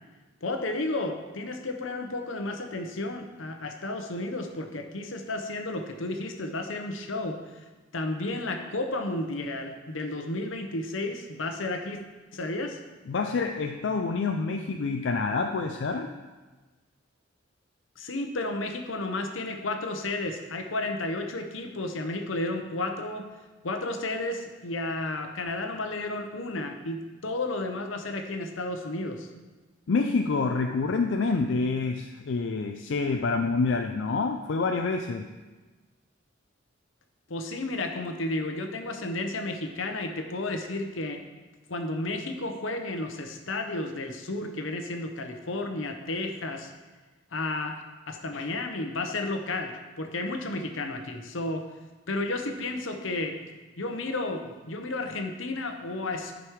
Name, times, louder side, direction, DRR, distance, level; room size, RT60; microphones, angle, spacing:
voice 1, 0.4-7.6 7.9-12.0 12.3-12.8 18.0-23.3 23.6-29.3 37.3-41.2 41.7-46.7 47.3-51.7 52.1-53.4 53.8-56.4, left 2 dB, 85° left, 5 dB, 0.9 m, -32 dB
voice 2, 13.1-16.2 29.9-35.3 48.3-48.4, left 4 dB, 65° left, 4 dB, 0.4 m, -27 dB
9.9 x 5.2 x 4.7 m, 1.2 s
head